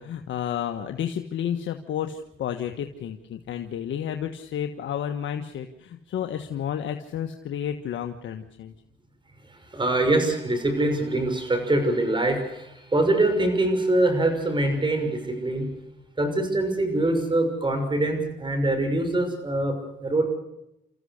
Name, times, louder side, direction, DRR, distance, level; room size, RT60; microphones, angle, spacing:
voice 1, 0.0-8.7, left 9 dB, 70° left, 6 dB, 1.4 m, -31 dB
voice 2, 9.7-15.7 16.2-20.3, right 2 dB, 25° right, 6 dB, 6.1 m, -24 dB
29.5 x 14.5 x 6.6 m, 0.87 s
cardioid pair, 90°, 20 cm